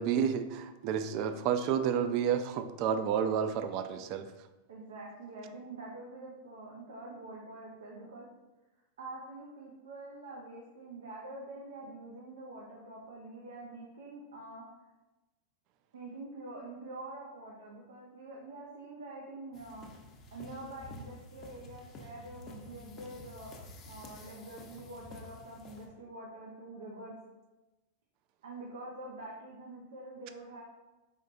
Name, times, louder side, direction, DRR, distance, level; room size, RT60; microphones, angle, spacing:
voice 1, 0.0-4.3, right 8 dB, 50° right, 10 dB, 0.3 m, -30 dB
voice 2, 4.7-8.3 9.0-14.6 15.9-19.9 20.3-27.1 28.4-30.6, right 2 dB, 90° right, -2 dB, 0.7 m, -46 dB
sound 1, 19.5-25.9, left 2 dB, 35° left, 0.6 m, -50 dB
4.9 x 3.1 x 2.5 m, 1.1 s
hypercardioid pair, 120°, 0 cm